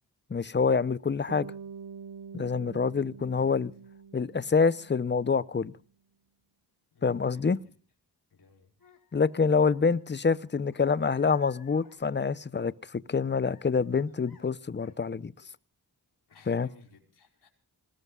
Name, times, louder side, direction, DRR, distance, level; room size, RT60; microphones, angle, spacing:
voice 1, 0.3-1.5 2.3-3.7 4.1-5.7 7.0-7.6 9.1-15.3 16.5-16.7, left 5 dB, 30° left, 0.7 m, -26 dB
Bass guitar, 1.3-5.6, right 6 dB, 80° right, 1.1 m, -46 dB
voice 2, 6.9-7.5 8.3-8.7 16.3-17.5, left 5 dB, 80° left, 4.7 m, -58 dB
sound 1, 8.8-12.8 13.1-14.5 14.8-15.1 15.4-15.5, left 4 dB, 60° left, 3.1 m, -58 dB
27.0 x 19.5 x 2.4 m
cardioid pair, 65°, 39 cm